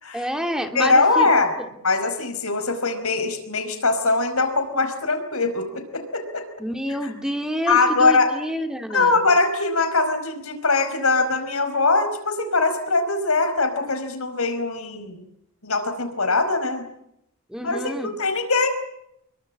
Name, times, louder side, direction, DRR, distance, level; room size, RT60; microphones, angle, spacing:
voice 1, 0.1-1.3 1.6-1.7 6.6-9.2 17.5-18.1, equal, 5° right, 5 dB, 2.9 m, -28 dB
voice 2, 0.7-1.5 1.8-5.7 5.9-6.4 7.0-7.1 7.7-8.3 8.9-15.2 15.6-16.8 17.6-18.7, left 3 dB, 80° left, 7 dB, 5.1 m, -21 dB
27.0 x 23.0 x 8.6 m, 0.78 s
head